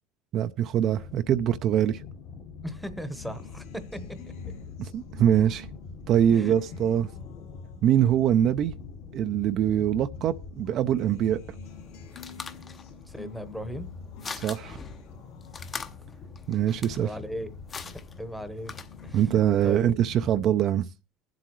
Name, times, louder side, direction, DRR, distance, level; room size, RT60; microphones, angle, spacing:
voice 1, 0.3-2.0 4.8-5.7 6.1-7.1 7.8-8.7 9.1-11.4 14.4-14.8 16.5-17.1 19.1-20.9, right 10 dB, 45° right, 0.5 m, -23 dB
sound 1, 0.9-20.6, left 5 dB, 55° left, 1.7 m, -44 dB
voice 2, 2.6-4.0 6.3-6.5 13.1-13.9 17.0-17.5 18.2-18.7 19.0-19.9, equal, ahead, 1.0 m, -37 dB
Acoustic guitar, 3.1-9.8 10.2-17.8 18.2-19.1, left 5 dB, 85° left, 2.9 m, -52 dB
sound 2, 11.6-19.3, left 5 dB, 25° left, 0.8 m, -43 dB
22.0 x 7.8 x 3.1 m
supercardioid pair, 125°, 0 cm